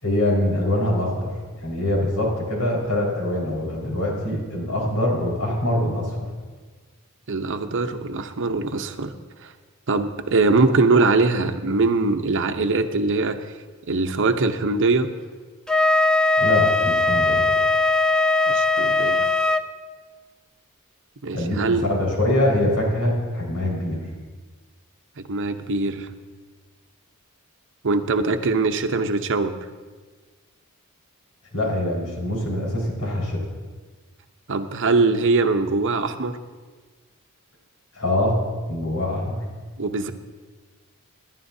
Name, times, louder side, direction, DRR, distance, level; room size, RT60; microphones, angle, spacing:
voice 1, 0.0-1.3 1.6-6.3 16.4-17.5 21.3-24.0 31.5-33.5 37.9-38.4 38.7-39.4, left 1 dB, 85° left, -3 dB, 4.8 m, -24 dB
voice 2, 7.3-9.1 9.4-9.5 9.9-13.4 13.9-15.1 18.5-19.3 21.2-21.9 25.2-26.1 27.8-29.5 34.5-36.4 39.8-40.1, right 3 dB, 60° right, 7 dB, 0.8 m, -22 dB
Wind instrument woodwind instrument, 15.7-19.6, left 3 dB, 5° left, 0.4 m, -19 dB
26.5 x 11.0 x 2.7 m, 1.4 s
head